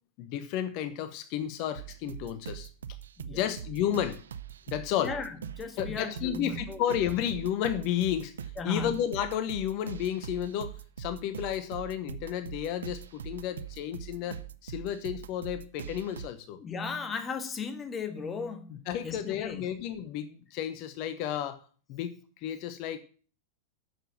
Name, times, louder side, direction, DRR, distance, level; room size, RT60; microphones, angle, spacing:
voice 1, 0.2-2.7 3.3-4.2 4.7-5.1 5.8-8.3 8.6-16.6 18.9-21.6 21.9-22.1 22.4-23.0, left 10 dB, 45° left, 11 dB, 0.8 m, -32 dB
sound 1, 1.7-16.3, right 9 dB, 65° right, 0.5 m, -42 dB
voice 2, 4.9-6.8 8.6-9.0 16.6-19.7, left 4 dB, 20° left, 8 dB, 1.5 m, -37 dB
9.1 x 7.0 x 7.5 m, 0.42 s
figure-of-eight pair, 90°, 0 cm